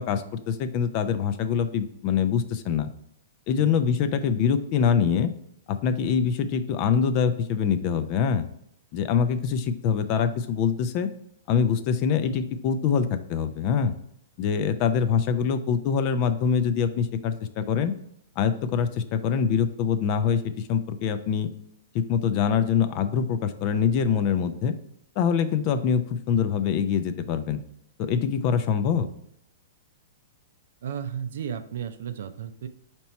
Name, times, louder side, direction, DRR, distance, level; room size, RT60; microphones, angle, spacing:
voice 1, 0.0-2.9 3.5-5.3 5.7-8.5 8.9-11.1 11.5-13.9 14.4-17.9 18.4-21.5 21.9-24.7 25.2-27.6 28.0-29.1, left 7 dB, 40° left, 10 dB, 0.4 m, -24 dB
voice 2, 30.8-32.7, right 8 dB, 70° right, 10 dB, 0.4 m, -33 dB
4.3 x 2.9 x 4.2 m, 0.72 s
hypercardioid pair, 135°, 0 cm